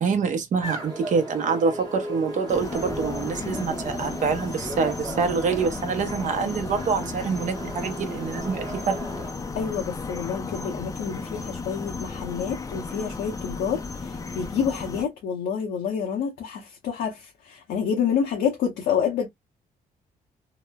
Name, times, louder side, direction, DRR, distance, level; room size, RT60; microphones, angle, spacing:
voice 1, 0.0-9.0, right 5 dB, 50° right, 0.7 m, -26 dB
sound 1, 0.6-9.3, right 2 dB, 25° right, 0.9 m, -36 dB
sound 2, 2.5-15.0, left 4 dB, 20° left, 0.4 m, -34 dB
voice 2, 3.4-3.7 9.6-19.3, left 7 dB, 85° left, 0.7 m, -28 dB
2.9 x 2.0 x 2.2 m
cardioid pair, 130°, 16 cm